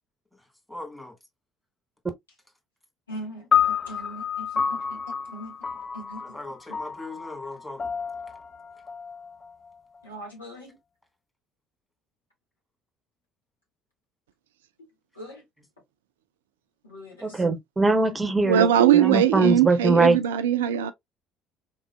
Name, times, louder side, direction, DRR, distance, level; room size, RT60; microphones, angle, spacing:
voice 1, 0.7-1.1 6.2-7.9, left 2 dB, 5° left, 2.0 m, -39 dB
voice 2, 3.1-5.0 5.3-5.5 5.9-6.2 10.0-10.7 15.2-15.4 16.8-17.4, equal, 80° left, 1.8 m, -41 dB
sound 1, 3.5-10.0, left 7 dB, 30° left, 0.5 m, -29 dB
voice 3, 17.2-20.2, right 3 dB, 20° right, 0.8 m, -22 dB
voice 4, 18.4-20.9, right 10 dB, 75° right, 0.4 m, -20 dB
3.7 x 3.7 x 2.2 m
figure-of-eight pair, 55°, 0 cm